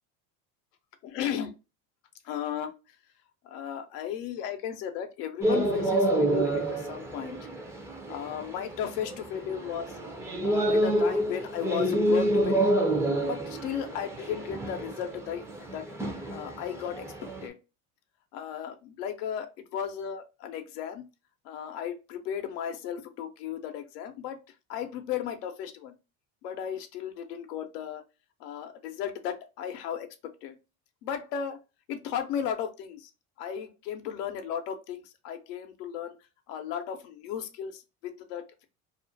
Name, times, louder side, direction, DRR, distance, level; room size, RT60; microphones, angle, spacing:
voice 1, 1.0-1.5 2.2-2.7 3.4-7.4 8.1-10.0 10.4-12.9 13.2-15.4 15.7-15.9 16.3-17.6 18.3-21.0 21.4-24.4 24.7-25.9 26.4-28.0 28.4-30.1 30.4-30.5 31.0-31.6 31.9-33.1 33.4-36.2 36.5-38.6, left 8 dB, 85° left, 0.7 m, -35 dB
sound 1, 5.4-17.5, right 1 dB, 5° right, 0.4 m, -28 dB
2.4 x 2.1 x 2.6 m
supercardioid pair, 90°, 46 cm